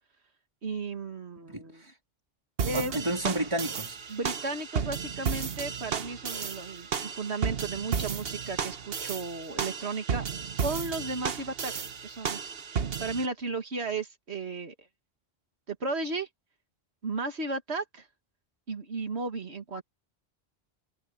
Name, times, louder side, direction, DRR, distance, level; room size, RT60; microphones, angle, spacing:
voice 1, 0.6-1.8 2.6-3.0 4.1-10.2 10.6-11.7 12.0-12.4 13.0-14.7 15.7-16.3 17.0-18.1 18.7-19.8, right 3 dB, 90° right, 2.2 m, -34 dB
voice 2, 1.4-1.9 2.7-4.0, right 1 dB, 25° right, 3.7 m, -31 dB
sound 1, 2.6-13.3, right 6 dB, 70° right, 1.3 m, -33 dB
omnidirectional pair, 1.1 m